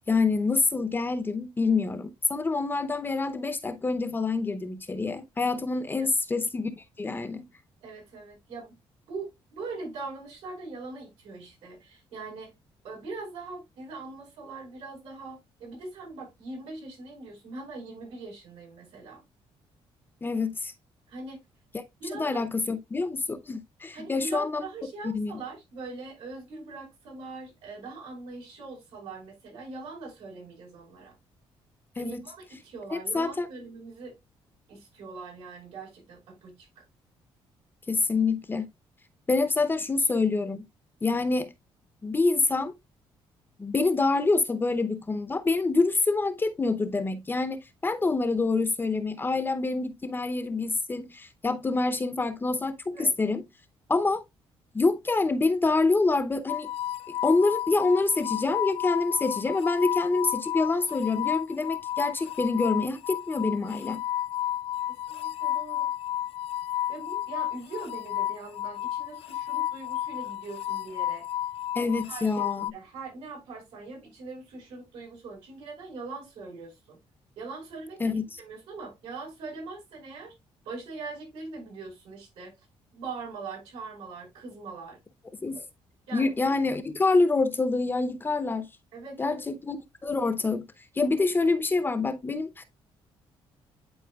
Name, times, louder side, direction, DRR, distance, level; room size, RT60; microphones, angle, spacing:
voice 1, 0.1-6.7 7.0-7.5 20.2-20.7 22.1-24.6 25.0-25.3 32.0-32.2 32.9-33.5 37.9-38.7 39.3-40.6 41.0-41.5 42.0-42.7 43.6-53.4 53.9-54.2 54.7-56.7 57.2-64.0 71.7-72.6 78.0-78.2 85.4-85.5 86.1-88.7 89.2-89.8 90.0-90.6 91.0-92.6, left 3 dB, 20° left, 0.7 m, -26 dB
voice 2, 7.8-8.7 9.1-12.5 12.8-19.2 21.1-21.4 22.0-22.4 23.9-31.1 31.9-34.1 34.7-36.8 52.9-53.1 64.9-65.9 66.9-71.2 72.1-72.5 72.7-77.0 77.4-78.0 78.4-80.3 80.6-82.5 82.9-85.0 85.5-85.6 86.1-86.6 88.9-89.4, right 3 dB, 90° right, 5.1 m, -41 dB
sound 1, 56.5-72.7, left 12 dB, 75° left, 0.4 m, -32 dB
10.5 x 4.3 x 2.3 m
cardioid pair, 125°, 10 cm